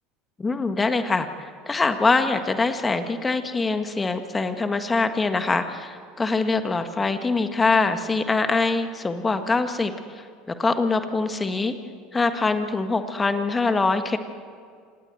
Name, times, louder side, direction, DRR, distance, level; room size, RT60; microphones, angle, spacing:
voice 1, 0.4-11.7 12.1-14.2, left 3 dB, 20° left, 8 dB, 1.7 m, -24 dB
26.5 x 19.0 x 8.0 m, 2.1 s
hypercardioid pair, 80°, 0 cm